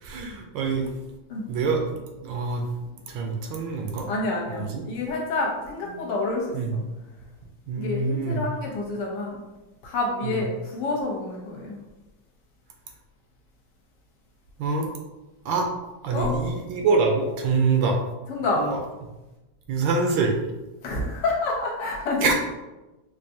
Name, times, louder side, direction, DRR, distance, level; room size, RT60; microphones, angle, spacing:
voice 1, 0.0-0.9 1.5-2.6 3.1-4.1 4.5-4.8 5.9-6.0 6.5-6.8 7.7-8.4 10.2-10.4 14.6-14.9 15.4-15.7 16.0-18.0 18.5-18.8 19.7-20.4 22.2-22.3, right 4 dB, 75° right, 2 dB, 1.2 m, -25 dB
voice 2, 4.1-6.5 6.7-6.8 7.8-9.4 9.8-11.8 16.1-16.3 18.3-18.6 20.8-22.3, left 2 dB, 70° left, -2 dB, 1.3 m, -28 dB
4.7 x 2.6 x 2.7 m, 1.1 s
omnidirectional pair, 2.1 m